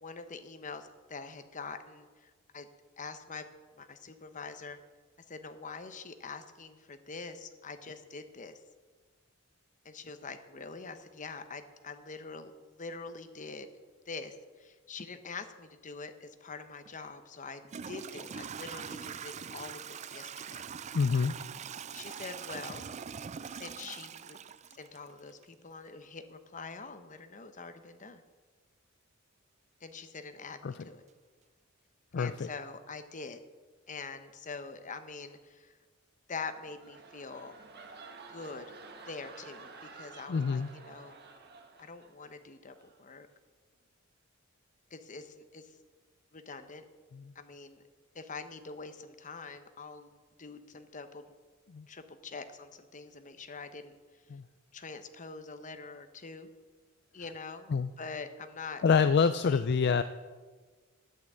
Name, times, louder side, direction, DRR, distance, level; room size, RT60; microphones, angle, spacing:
voice 1, 0.0-2.7 3.0-3.5 3.8-4.8 5.3-8.6 9.8-13.7 14.1-20.7 21.9-22.9 23.5-24.4 24.7-28.2 29.8-31.0 32.2-33.4 33.9-35.7 36.3-37.6 38.3-38.7 39.1-41.2 41.8-43.3 44.9-45.7 46.3-46.8 47.3-47.8 48.1-51.2 51.9-53.9 54.7-56.5 57.1-57.7 58.0-59.6, left 4 dB, 40° left, 9 dB, 0.9 m, -44 dB
Toilet flush / Trickle dribble, 16.8-16.9 17.6-25.4, right 7 dB, 35° right, 0.4 m, -43 dB
voice 2, 20.9-21.3 30.6-30.9 32.1-32.5 40.3-40.7 47.1-47.3 51.7-51.9 54.3-54.4 57.7-57.9 58.8-60.0, left 5 dB, 55° left, 12 dB, 0.4 m, -27 dB
sound 1, 36.5-42.4 42.7-43.0, right 4 dB, 50° right, 1.4 m, -51 dB
10.5 x 8.8 x 7.8 m, 1.4 s
head